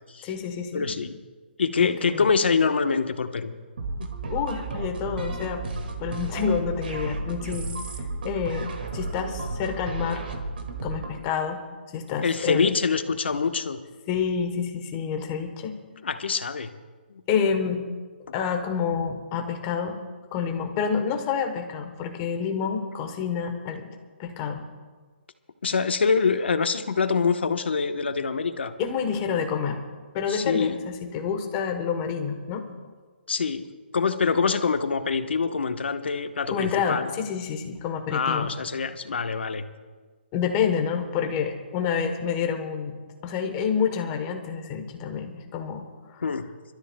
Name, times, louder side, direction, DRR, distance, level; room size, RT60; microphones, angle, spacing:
voice 1, 0.2-0.9 1.8-2.3 4.3-5.6 6.0-7.7 8.2-10.3 10.8-11.6 11.9-12.7 14.1-15.7 17.3-17.8 18.3-20.0 20.3-23.9 24.2-24.6 28.8-29.8 30.1-32.6 36.5-38.5 40.3-43.0 43.2-45.8 46.1-46.2, left 6 dB, 15° left, 5 dB, 1.0 m, -28 dB
voice 2, 0.7-1.2 1.6-3.5 4.0-4.1 12.2-13.8 16.0-16.7 25.6-28.7 30.3-30.8 33.3-33.7 33.9-37.1 38.1-39.6 46.2-46.5, left 5 dB, 80° left, 8 dB, 1.1 m, -25 dB
sound 1, 3.8-11.2, right 3 dB, 65° right, 2.0 m, -33 dB
29.0 x 13.0 x 2.2 m, 1.4 s
hypercardioid pair, 180°, 6 cm